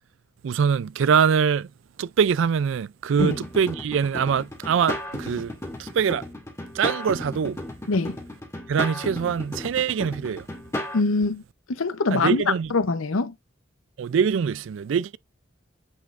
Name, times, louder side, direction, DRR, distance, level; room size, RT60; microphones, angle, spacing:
voice 1, 0.4-1.7 2.0-5.5 5.8-6.3 6.7-7.6 8.7-10.5 12.1-12.7 14.0-15.2, right 7 dB, 65° right, 0.3 m, -23 dB
sound 1, 3.2-11.0, left 1 dB, 15° left, 2.0 m, -34 dB
voice 2, 10.9-11.4 11.8-12.4 12.7-13.3, left 3 dB, 90° left, 0.7 m, -23 dB
8.5 x 5.2 x 2.5 m
head